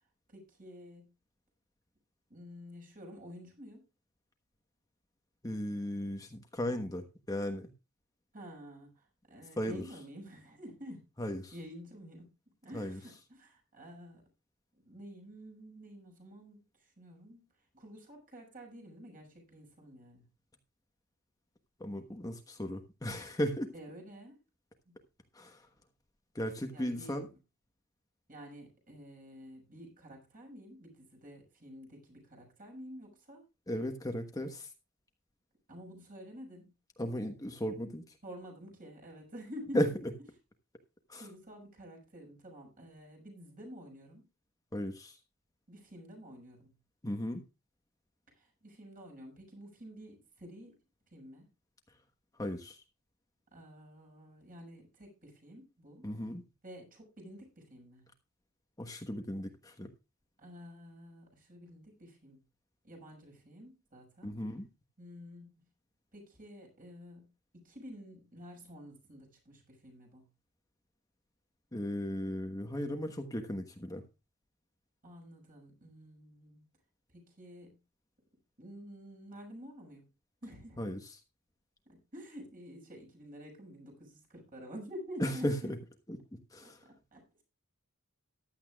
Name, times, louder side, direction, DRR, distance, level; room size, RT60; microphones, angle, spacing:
voice 1, 0.3-1.1 2.3-3.8 8.3-11.1 11.5-12.3 12.6-14.2 14.7-17.5 17.7-20.2 23.7-24.4 24.8-24.9 26.7-27.3 28.3-33.4 35.7-36.7 38.2-40.0 41.1-44.2 45.7-46.7 48.3-50.7 51.1-51.5 53.5-56.1 56.6-58.0 60.4-62.4 62.8-64.3 65.0-65.7 66.1-70.2 75.0-76.6 77.1-77.8 78.6-80.1 80.4-80.9 81.8-85.7 86.6-87.4, equal, 40° right, 1 dB, 6.5 m, -50 dB
voice 2, 5.4-7.7 9.6-9.8 11.2-11.5 12.7-13.0 21.8-23.7 25.3-25.7 26.3-27.3 33.7-34.7 37.0-38.2 39.7-39.9 41.1-41.3 44.7-45.2 47.0-47.4 52.3-52.8 56.0-56.4 58.8-59.9 64.2-64.7 71.7-74.0 80.8-81.2 85.2-85.8 86.1-86.2 86.5-86.9, equal, 15° left, 5 dB, 1.2 m, -36 dB
15.0 x 11.5 x 2.4 m, 0.28 s
head